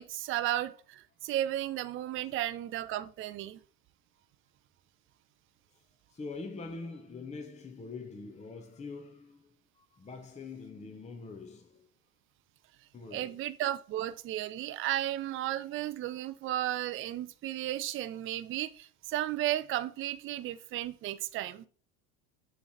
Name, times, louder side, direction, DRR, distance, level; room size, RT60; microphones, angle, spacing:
voice 1, 0.0-3.6 13.1-21.7, right 13 dB, 30° right, 0.4 m, -34 dB
voice 2, 6.1-9.5 9.8-11.9 12.9-13.4, left 4 dB, 15° left, 0.8 m, -44 dB
6.8 x 3.3 x 4.1 m
hypercardioid pair, 75°, 46 cm